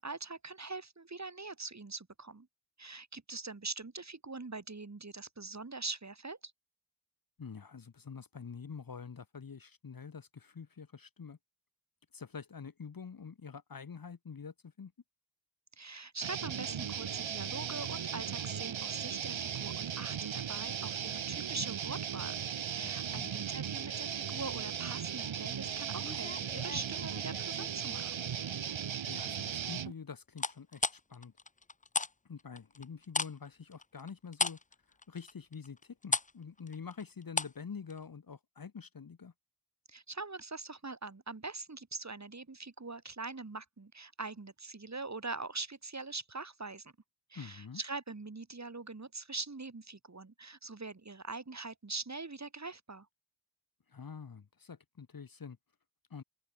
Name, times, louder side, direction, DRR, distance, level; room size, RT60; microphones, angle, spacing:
voice 1, 0.0-2.5 2.8-6.5 15.8-22.4 22.7-28.2 39.9-46.9 47.3-53.1, right 3 dB, 35° right, 3.3 m, -43 dB
voice 2, 7.4-11.4 12.1-14.9 22.8-23.3 29.1-31.3 32.2-34.6 34.9-39.3 47.3-47.8 53.9-55.6 56.1-56.2, left 6 dB, 45° left, 1.3 m, -46 dB
sound 1, 16.2-29.9, right 8 dB, 75° right, 1.4 m, -37 dB
sound 2, 26.0-27.7 28.2-28.6 30.4-32.1 32.4-37.6 37.9-38.0, left 3 dB, 15° left, 0.6 m, -36 dB
wide cardioid pair, 70°, 47 cm